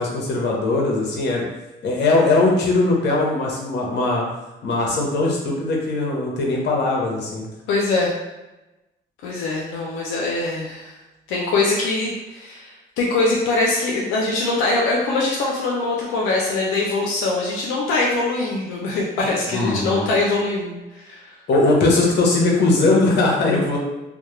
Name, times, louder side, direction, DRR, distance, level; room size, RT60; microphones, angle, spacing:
voice 1, 0.0-1.4 1.8-4.2 4.6-7.5 19.5-20.1 21.5-23.8, left 2 dB, 60° left, -2 dB, 0.7 m, -20 dB
voice 2, 7.7-8.1 9.2-10.9 11.3-21.3, left 3 dB, 90° left, -3 dB, 0.4 m, -22 dB
2.3 x 2.0 x 2.9 m, 1.0 s
cardioid pair, 90°, 20 cm